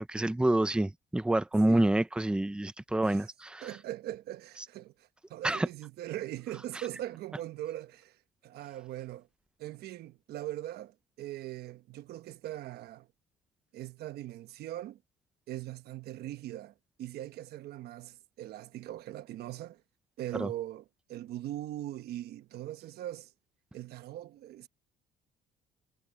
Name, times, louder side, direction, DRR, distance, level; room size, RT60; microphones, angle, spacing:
voice 1, 0.0-3.7 5.4-5.7 20.4-20.5, right 1 dB, 5° right, 0.8 m, -27 dB
voice 2, 3.6-8.2 8.4-9.3 9.6-13.1 13.7-15.0 15.5-19.8 20.2-23.3 23.7-24.7, right 13 dB, 70° right, 1.1 m, -41 dB
cardioid pair, 110°, 17 cm